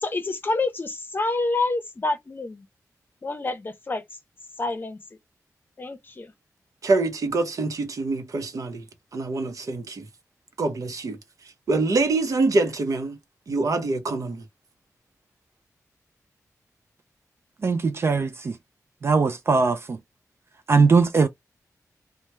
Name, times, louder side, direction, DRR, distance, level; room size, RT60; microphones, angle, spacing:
voice 1, 0.0-2.7 3.2-4.0 4.6-5.0 5.8-6.3, left 2 dB, 35° left, 0.7 m, -27 dB
voice 2, 6.8-8.8 9.1-10.1 10.6-11.2 11.7-13.2 13.5-14.4, right 3 dB, 65° right, 0.8 m, -25 dB
voice 3, 17.6-18.6 19.0-20.0 20.7-21.3, right 4 dB, 45° right, 0.4 m, -20 dB
3.0 x 2.1 x 3.2 m
wide cardioid pair, 150°, 6 cm